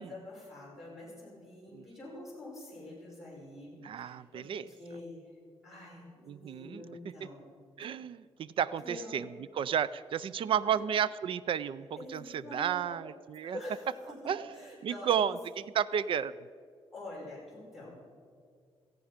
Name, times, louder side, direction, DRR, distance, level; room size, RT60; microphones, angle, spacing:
voice 1, 0.0-5.3 5.6-7.4 8.8-9.2 10.7-10.8 12.0-13.0 13.4-15.3 16.9-18.0, left 1 dB, ahead, -5 dB, 5.3 m, -46 dB
voice 2, 3.8-4.7 6.3-6.8 7.8-9.3 9.6-11.9 12.1-13.6 14.3-14.5 14.8-16.3, right 8 dB, 55° right, 17 dB, 0.4 m, -32 dB
17.5 x 14.5 x 5.0 m, 2.1 s
wide cardioid pair, 180°, 10 cm